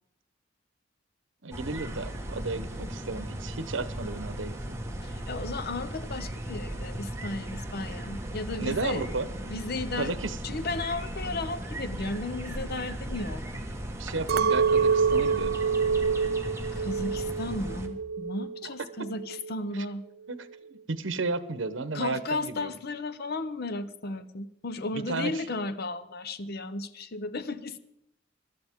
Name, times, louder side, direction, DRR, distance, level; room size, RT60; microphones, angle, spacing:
voice 1, 1.4-4.8 8.6-9.3 10.0-10.4 14.0-15.6 19.7-19.9 20.3-22.7 24.9-25.4, right 3 dB, 85° right, 13 dB, 0.9 m, -33 dB
sound 1, 1.5-17.9, right 1 dB, 15° right, 1.6 m, -37 dB
voice 2, 5.0-9.1 9.5-10.2 10.4-13.6 16.8-20.0 21.9-27.8, left 2 dB, 55° left, 12 dB, 0.8 m, -34 dB
Chink clink, 14.3-18.7 19.0-19.6, right 5 dB, 55° right, 0.5 m, -27 dB
19.5 x 12.5 x 3.6 m, 0.78 s
head